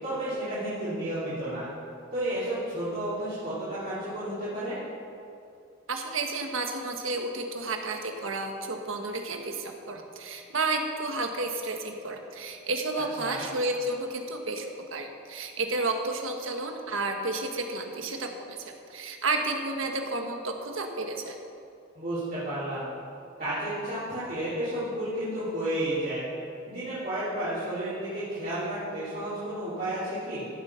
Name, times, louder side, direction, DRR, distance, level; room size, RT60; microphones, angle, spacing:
voice 1, 0.0-1.7 2.1-4.8 13.2-13.4 21.9-22.9 23.4-26.2 26.7-30.5, right 1 dB, 45° right, -13 dB, 3.3 m, -32 dB
voice 2, 5.9-21.3, right 2 dB, 80° right, 4 dB, 1.3 m, -31 dB
15.0 x 7.4 x 5.7 m, 2.6 s
head